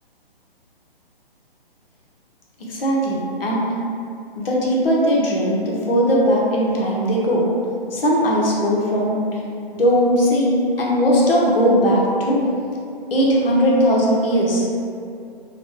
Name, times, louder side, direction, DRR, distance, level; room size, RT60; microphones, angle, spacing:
voice 1, 2.7-3.6 4.4-7.4 7.9-9.2 9.7-12.4 13.1-14.6, equal, 70° left, -3 dB, 0.8 m, -18 dB
2.9 x 2.2 x 3.0 m, 2.5 s
figure-of-eight pair, 140°, 30 cm